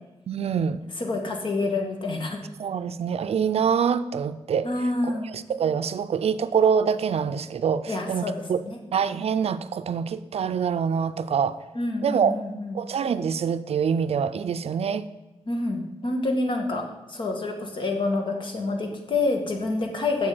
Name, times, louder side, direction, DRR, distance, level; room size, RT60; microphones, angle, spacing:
voice 1, 0.3-0.8 2.6-4.7 5.0-8.6 8.9-11.6 12.0-12.4 12.7-15.1, right 7 dB, 65° right, 12 dB, 0.5 m, -25 dB
voice 2, 1.0-2.4 4.6-5.3 7.9-8.8 11.7-12.8 15.5-20.3, left 2 dB, 45° left, 3 dB, 1.8 m, -27 dB
7.5 x 7.3 x 7.9 m, 1.1 s
wide cardioid pair, 145°, 11 cm